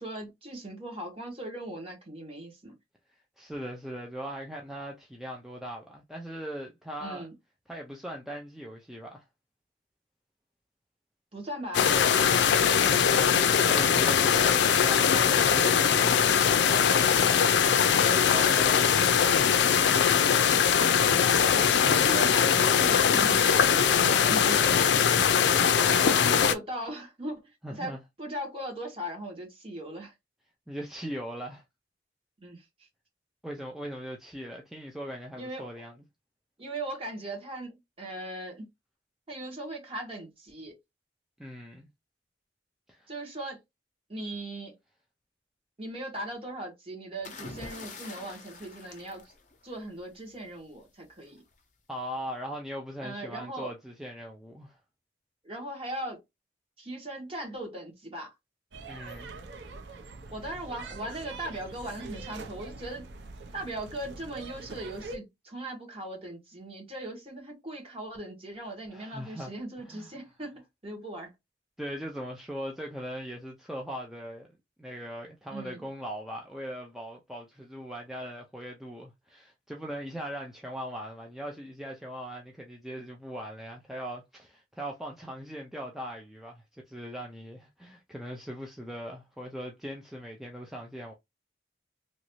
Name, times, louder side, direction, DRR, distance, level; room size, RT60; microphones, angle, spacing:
voice 1, 0.0-2.7 7.0-7.3 11.3-12.0 21.5-25.0 26.0-27.4 27.7-30.1 32.4-32.6 35.3-35.7 36.6-38.7 39.3-40.7 43.1-43.6 44.1-44.8 45.8-49.3 49.6-51.4 53.0-53.7 55.4-56.2 56.8-58.3 60.3-63.1 63.5-71.3 75.5-75.8, right 1 dB, 35° right, 1.5 m, -38 dB
voice 2, 3.4-7.3 7.7-9.2 12.8-19.8 25.7-26.4 27.6-28.0 30.7-31.6 33.4-35.9 41.4-41.9 42.9-43.1 51.9-54.8 58.8-59.3 68.9-69.5 69.9-70.1 71.8-74.5 74.8-91.1, equal, ahead, 0.4 m, -40 dB
sound 1, 11.7-26.5, left 7 dB, 80° left, 0.4 m, -22 dB
sound 2, 47.2-50.0 51.2-51.5, left 3 dB, 45° left, 0.7 m, -45 dB
sound 3, 58.7-65.2, right 3 dB, 90° right, 0.7 m, -43 dB
3.0 x 2.6 x 3.0 m
head